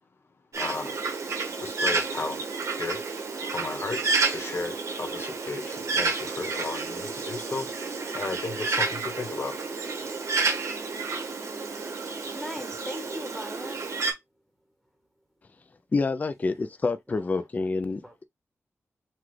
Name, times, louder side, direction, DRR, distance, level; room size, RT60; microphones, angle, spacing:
Bird, 0.5-14.1, right 4 dB, 80° right, 1.4 m, -30 dB
voice 1, 0.6-1.0 1.6-2.4 2.7-3.0 3.5-7.7 8.1-9.6 9.9-10.0, left 3 dB, 50° left, 1.1 m, -34 dB
voice 2, 12.3-13.9 17.1-17.7 18.0-18.2, equal, 5° right, 1.1 m, -40 dB
voice 3, 15.9-18.2, left 3 dB, 30° left, 0.4 m, -28 dB
5.9 x 2.3 x 3.2 m
wide cardioid pair, 150°, 5 cm